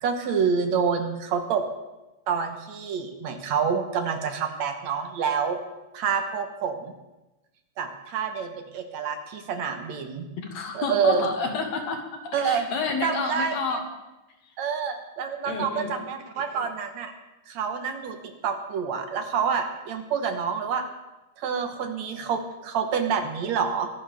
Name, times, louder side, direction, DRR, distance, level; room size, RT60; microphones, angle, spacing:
voice 1, 0.0-1.7 2.3-5.6 5.9-6.9 7.8-10.3 10.7-11.3 12.3-12.7 13.0-13.8 14.6-17.1 17.5-20.8 21.4-23.9, right 6 dB, 70° right, 6 dB, 2.2 m, -27 dB
voice 2, 10.4-13.8 14.4-14.5 15.4-15.9, left 4 dB, 65° left, 4 dB, 2.6 m, -30 dB
23.0 x 11.5 x 3.5 m, 1.0 s
omnidirectional pair, 3.5 m